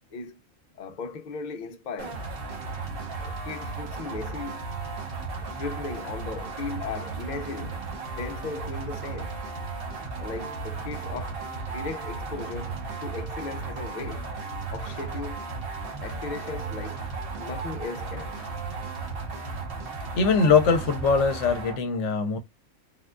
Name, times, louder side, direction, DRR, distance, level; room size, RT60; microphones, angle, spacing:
voice 1, 0.7-2.3 3.2-4.6 5.4-7.8 8.2-9.3 10.2-14.3 14.7-15.4 16.0-17.1 17.4-18.4 21.9-22.1, left 4 dB, 50° left, 0.6 m, -37 dB
sound 1, 2.0-21.8, right 4 dB, 50° right, 1.0 m, -35 dB
voice 2, 20.2-22.4, left 5 dB, 70° left, 0.9 m, -22 dB
3.6 x 2.3 x 2.3 m
omnidirectional pair, 1.4 m